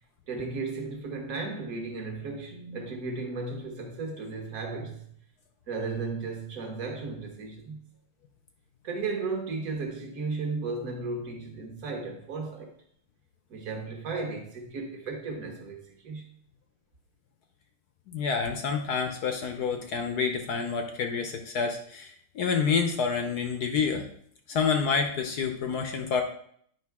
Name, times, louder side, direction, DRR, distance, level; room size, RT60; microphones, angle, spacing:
voice 1, 0.3-5.2 5.7-7.8 8.8-12.7 13.5-16.3, right 3 dB, 45° right, 1.6 m, -35 dB
voice 2, 18.1-24.1 24.5-26.2, left 5 dB, 65° left, 1.0 m, -28 dB
9.5 x 5.3 x 3.5 m
omnidirectional pair, 2.3 m